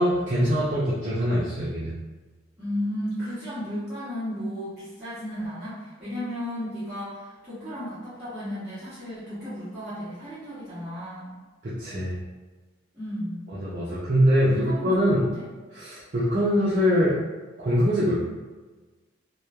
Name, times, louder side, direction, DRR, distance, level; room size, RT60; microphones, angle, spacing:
voice 1, 0.0-1.9 11.6-12.2 13.6-15.3 15.7-17.2 17.6-18.2, equal, 40° right, -9 dB, 0.4 m, -23 dB
voice 2, 2.6-11.4 12.9-13.5 14.4-15.4, equal, 5° right, -17 dB, 1.0 m, -34 dB
3.0 x 2.2 x 2.3 m, 1.3 s
head